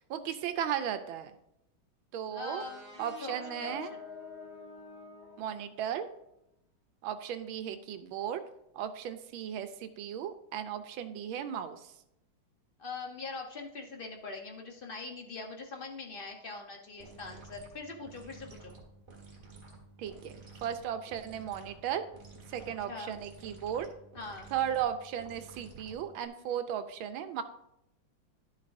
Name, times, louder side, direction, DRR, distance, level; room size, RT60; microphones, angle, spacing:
voice 1, 0.1-1.3 2.1-2.6 3.0-3.9 5.4-6.1 7.0-8.4 8.7-11.9 20.0-22.0 22.5-23.9 24.5-27.4, right 9 dB, 80° right, 9 dB, 1.4 m, -36 dB
voice 2, 2.3-4.0 12.8-18.8 22.9-23.2 24.1-24.5 26.5-26.6, left 3 dB, 45° left, 1 dB, 0.7 m, -43 dB
sound 1, 2.6-6.1, left 4 dB, 25° left, 2.4 m, -48 dB
sound 2, 17.0-26.3, right 3 dB, 35° right, 2.0 m, -52 dB
11.5 x 7.3 x 2.6 m, 0.82 s
omnidirectional pair, 2.3 m